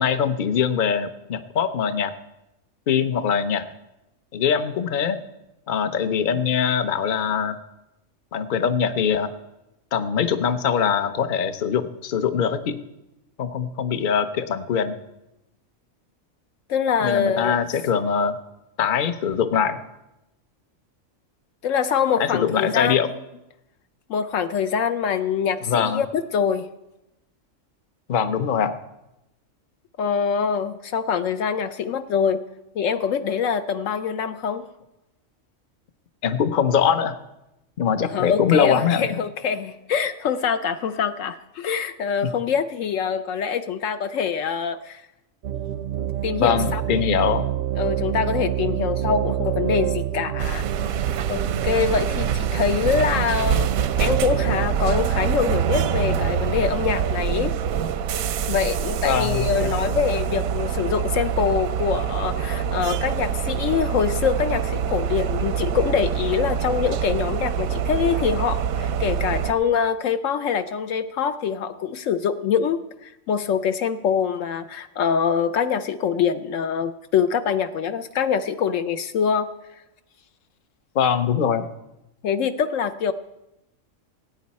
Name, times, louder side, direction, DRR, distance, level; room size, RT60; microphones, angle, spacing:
voice 1, 0.0-2.1 2.9-3.7 4.3-5.2 5.7-7.6 8.3-9.3 9.9-12.8 13.4-15.0 17.0-18.4 18.8-19.8 22.2-23.1 25.7-26.0 28.1-28.8 36.2-37.2 37.8-39.1 46.4-47.4 59.0-60.0 80.9-81.7, left 7 dB, 45° left, 10 dB, 0.8 m, -22 dB
voice 2, 16.7-17.6 21.6-23.0 24.1-26.7 30.0-32.4 32.7-34.7 38.0-45.0 46.2-46.8 47.8-50.6 51.3-53.7 54.0-57.5 58.5-79.5 82.2-83.1, left 7 dB, 70° left, 10 dB, 0.9 m, -24 dB
sound 1, 45.4-54.7, right 11 dB, 65° right, 0.7 m, -27 dB
sound 2, 50.4-69.5, right 8 dB, 90° right, 1.1 m, -25 dB
18.0 x 9.2 x 4.2 m, 0.92 s
omnidirectional pair, 1.4 m